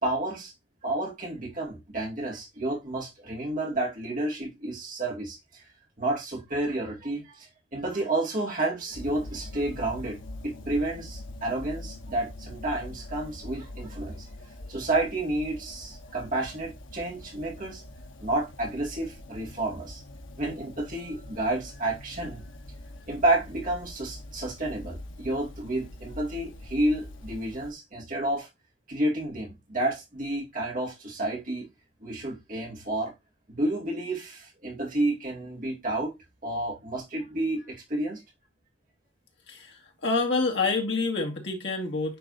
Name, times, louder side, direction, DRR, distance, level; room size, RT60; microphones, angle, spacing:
voice 1, 0.0-0.5 0.8-5.6 6.0-14.3 14.6-17.8 18.2-20.0 20.4-22.5 23.1-28.5 28.9-31.7 32.0-33.1 33.5-36.1 36.4-38.2, right 2 dB, 40° right, 2.4 m, -30 dB
sound 1, 8.9-27.7, left 1 dB, 80° left, 1.1 m, -43 dB
voice 2, 39.5-42.2, left 3 dB, 60° left, 2.1 m, -27 dB
10.0 x 4.1 x 2.7 m
head